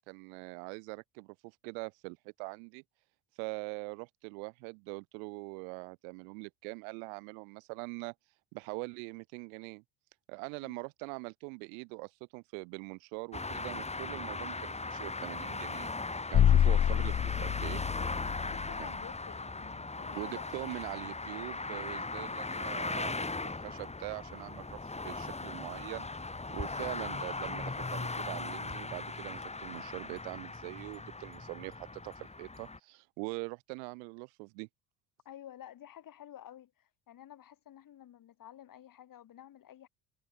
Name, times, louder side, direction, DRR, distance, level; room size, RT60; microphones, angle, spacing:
voice 1, 0.0-2.8 3.4-8.1 8.5-9.8 10.3-15.9 16.3-17.8 18.8-18.9 20.1-26.1 26.5-34.7, right 40 dB or more, 80° right, 4.1 m, -43 dB
sound 1, 13.3-32.8, left 3 dB, 15° left, 5.1 m, -39 dB
sound 2, 16.3-18.8, left 10 dB, 35° left, 1.0 m, -27 dB
voice 2, 16.5-17.0 18.4-20.8 26.6-26.9 35.3-39.9, left 11 dB, 55° left, 5.5 m, -51 dB
supercardioid pair, 80°, 41 cm